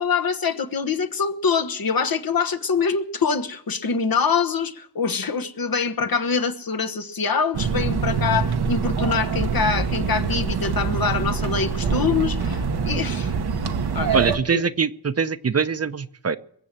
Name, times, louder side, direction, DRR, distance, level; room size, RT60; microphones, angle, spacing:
voice 1, 0.0-13.3 13.9-14.2 14.5-14.6, left 5 dB, 65° left, 9 dB, 1.2 m, -24 dB
sound 1, 7.5-14.4, right 6 dB, 85° right, 1.1 m, -24 dB
voice 2, 14.1-16.4, right 6 dB, 40° right, 12 dB, 0.7 m, -23 dB
21.5 x 7.5 x 7.4 m, 0.67 s
cardioid pair, 50°, 38 cm